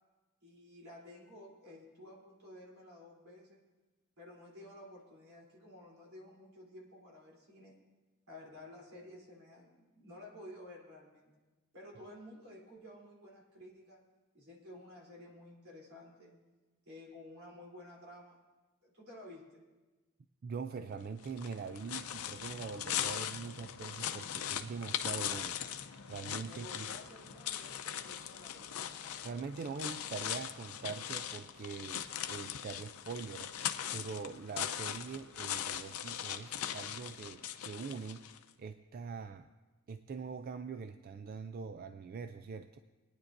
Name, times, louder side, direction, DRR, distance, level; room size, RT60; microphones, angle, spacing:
voice 1, 0.4-3.6 4.2-7.7 8.3-11.3 11.7-14.0 14.3-16.3 16.8-18.4 18.8-19.6 26.4-28.9, left 1 dB, 75° right, -2 dB, 3.3 m, -53 dB
voice 2, 20.4-25.6 26.1-26.9 29.2-33.5 33.9-38.3 38.6-39.5 39.9-42.8, right 5 dB, 40° right, 9 dB, 0.3 m, -43 dB
sound 1, 21.2-38.4, left 10 dB, 90° left, 0.6 m, -40 dB
23.5 x 9.7 x 2.6 m, 1.2 s
head